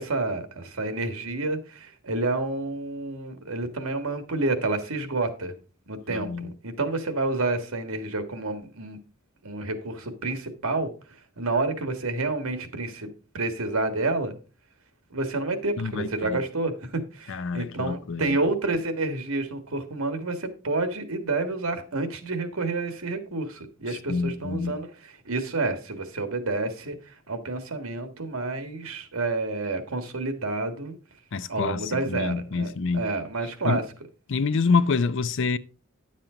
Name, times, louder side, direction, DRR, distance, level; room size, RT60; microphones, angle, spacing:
voice 1, 0.0-5.6 5.9-9.0 9.4-10.9 11.4-13.1 13.3-14.4 15.1-31.0 31.5-33.8, right 2 dB, 85° right, 1.6 m, -29 dB
voice 2, 6.1-6.5 15.8-16.4 17.3-18.4 24.1-24.8 31.3-33.1 33.6-33.8 34.3-35.6, left 4 dB, 60° left, 0.5 m, -27 dB
10.0 x 7.4 x 3.8 m
head